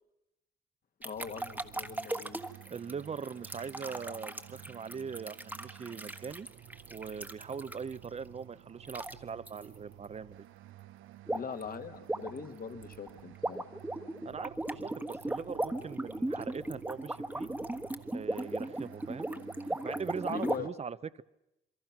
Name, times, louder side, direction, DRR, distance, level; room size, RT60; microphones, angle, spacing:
voice 1, 1.0-2.4 11.3-13.6 20.3-20.7, left 6 dB, 45° left, 8 dB, 2.0 m, -41 dB
sound 1, 1.0-8.1 8.8-9.1 9.5-9.7 11.3-11.6 11.9-20.6, right 1 dB, 10° right, 1.4 m, -37 dB
sound 2, 1.1-20.7, right 13 dB, 85° right, 0.9 m, -53 dB
voice 2, 2.7-6.5 6.9-10.4 14.2-17.5 18.1-19.3 19.7-21.2, right 6 dB, 35° right, 17 dB, 0.8 m, -41 dB
27.5 x 22.5 x 6.0 m, 0.91 s
cardioid pair, 90°, 20 cm